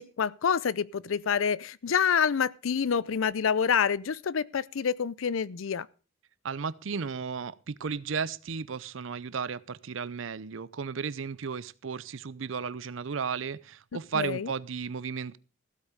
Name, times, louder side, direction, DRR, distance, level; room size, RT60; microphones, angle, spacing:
voice 1, 0.0-5.9 14.1-14.5, left 7 dB, 85° left, 0.5 m, -27 dB
voice 2, 6.4-15.4, right 5 dB, 75° right, 0.6 m, -34 dB
15.0 x 8.3 x 5.0 m
head